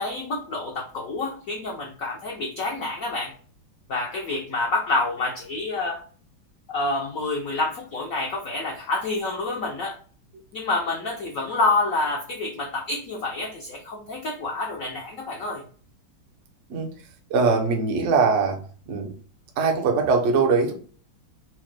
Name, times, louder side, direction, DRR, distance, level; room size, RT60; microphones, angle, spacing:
voice 1, 0.0-3.3 3.9-6.0 6.7-10.0 10.5-15.6, left 3 dB, 80° left, 0.7 m, -28 dB
voice 2, 17.3-18.6 18.9-19.1 19.6-20.7, right 4 dB, 70° right, 0.7 m, -21 dB
4.4 x 2.1 x 3.1 m
omnidirectional pair, 2.3 m